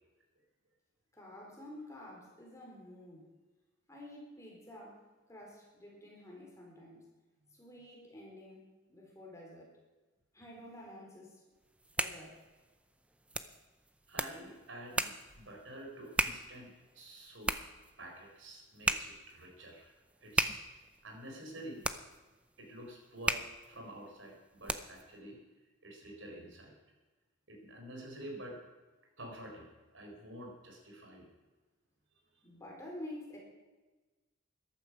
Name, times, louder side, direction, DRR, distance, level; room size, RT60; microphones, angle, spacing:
voice 1, 1.1-3.3 3.9-7.1 7.5-9.7 10.3-11.4 12.0-12.4 32.4-33.4, left 1 dB, 15° left, -2 dB, 3.9 m, -50 dB
sound 1, 11.6-25.1, right 2 dB, 5° right, 0.5 m, -38 dB
voice 2, 14.1-17.5 18.0-19.9 20.2-20.6 21.0-21.9 22.6-25.4 25.8-26.7 27.5-28.6 29.2-31.3, right 1 dB, 70° right, 1 dB, 4.4 m, -49 dB
14.5 x 12.0 x 6.1 m, 1.2 s
head